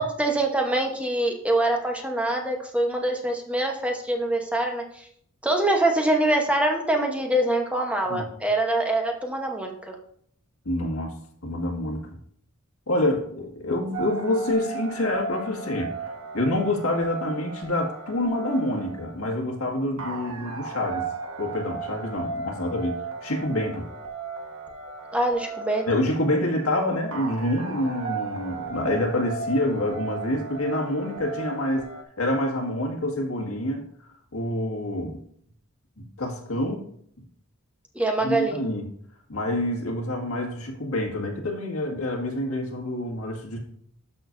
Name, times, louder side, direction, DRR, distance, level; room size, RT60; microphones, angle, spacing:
voice 1, 0.0-5.1 5.4-10.0 25.1-25.9 37.9-38.6, right 1 dB, 5° right, 2 dB, 0.9 m, -24 dB
voice 2, 10.7-11.1 11.4-12.0 12.9-21.1 21.4-23.9 25.9-31.9 32.2-33.9 34.3-35.2 36.2-36.8 38.2-38.8 39.3-43.6, left 1 dB, 85° left, 0 dB, 1.9 m, -27 dB
sound 1, 13.9-32.0, right 4 dB, 70° right, 1.3 m, -36 dB
12.5 x 6.2 x 2.6 m, 0.65 s
head